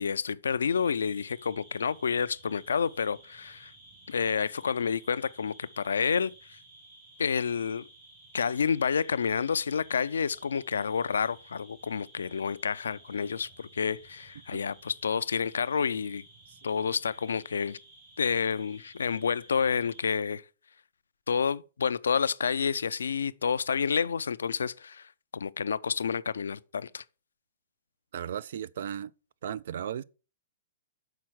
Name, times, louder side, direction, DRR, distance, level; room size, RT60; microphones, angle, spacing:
voice 1, 0.0-3.7 4.1-6.6 7.2-7.9 8.3-16.2 16.6-17.8 18.2-20.4 21.3-27.0, left 6 dB, 85° left, 0.4 m, -29 dB
sound 1, 0.6-20.1, right 2 dB, 50° right, 3.2 m, -55 dB
voice 2, 28.1-29.1 29.4-30.0, right 9 dB, 65° right, 0.3 m, -35 dB
5.8 x 4.3 x 6.2 m
hypercardioid pair, 135°, 0 cm